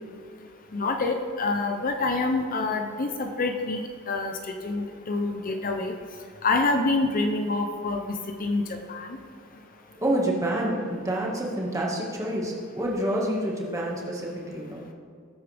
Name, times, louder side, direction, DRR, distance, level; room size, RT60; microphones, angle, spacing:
voice 1, 0.7-5.9 6.4-9.1, left 3 dB, 40° left, 4 dB, 0.7 m, -27 dB
voice 2, 10.0-14.8, right 1 dB, 15° right, -3 dB, 1.8 m, -28 dB
19.0 x 8.4 x 3.5 m, 2.4 s
head